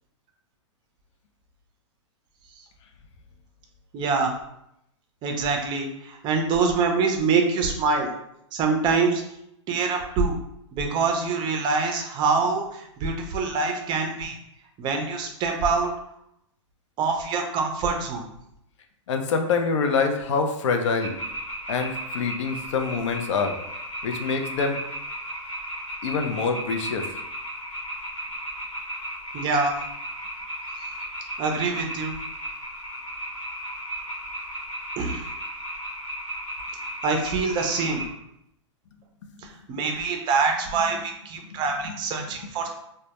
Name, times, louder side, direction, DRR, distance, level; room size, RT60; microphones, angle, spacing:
voice 1, 3.9-4.3 5.2-8.1 8.5-9.2 9.7-10.4 10.8-14.3 14.8-15.9 17.0-18.2 29.3-29.8 31.4-32.2 35.0-35.2 37.0-38.0 39.7-42.7, right 4 dB, 30° right, 3 dB, 0.4 m, -25 dB
voice 2, 19.1-21.1 21.7-23.5 24.0-24.8 26.0-27.1 41.4-42.0 42.4-42.7, left 5 dB, 70° left, 5 dB, 0.4 m, -26 dB
sound 1, 21.0-38.1, equal, 85° left, 1.0 m, -35 dB
2.1 x 2.1 x 2.8 m, 0.79 s
hypercardioid pair, 120°, 16 cm